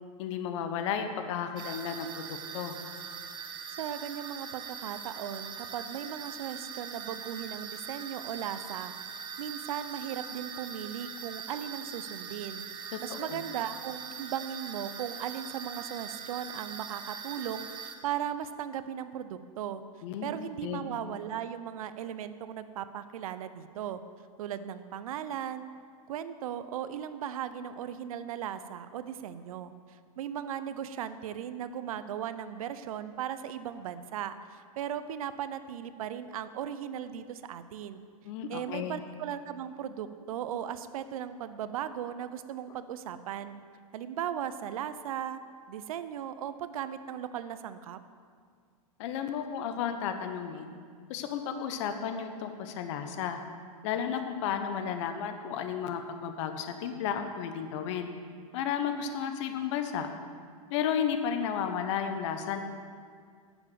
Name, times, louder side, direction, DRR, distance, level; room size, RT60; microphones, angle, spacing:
voice 1, 0.2-2.1 2.5-2.7 12.9-13.4 20.0-20.3 20.6-20.8 38.2-39.0 49.0-50.7 51.1-53.4 53.8-58.1 58.5-60.1 60.7-62.6, left 8 dB, 55° left, 7 dB, 1.2 m, -33 dB
sound 1, 1.6-18.0, right 7 dB, 25° right, 0.8 m, -42 dB
voice 2, 3.8-8.9 9.4-19.8 20.2-24.0 24.4-25.7 26.1-38.0 38.5-43.5 43.9-45.4 45.7-48.0, right 9 dB, 70° right, 12 dB, 0.7 m, -37 dB
11.0 x 7.1 x 7.0 m, 2.1 s
hypercardioid pair, 130°, 19 cm